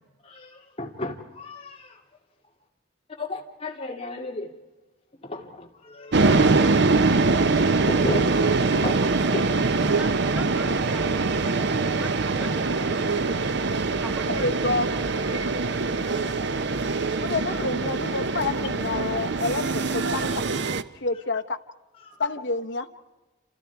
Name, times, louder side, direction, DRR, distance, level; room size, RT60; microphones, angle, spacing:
voice 1, 0.2-2.0 3.2-4.5 5.2-7.0 7.9-9.7 11.6-11.7 12.0-12.1 13.7-14.2 15.4-16.3 17.0-17.4 22.0-22.2, left 2 dB, 30° left, 1 dB, 2.4 m, -36 dB
sound 1, 6.1-20.8, right 3 dB, 65° right, 0.8 m, -23 dB
voice 2, 9.9-13.3 14.0-14.4 16.1-16.3, right 1 dB, 5° right, 7 dB, 0.9 m, -40 dB
voice 3, 14.3-14.9 17.2-20.5 21.0-21.6 22.2-22.9, left 3 dB, 65° left, 5 dB, 1.1 m, -28 dB
28.5 x 28.0 x 4.7 m, 1.2 s
head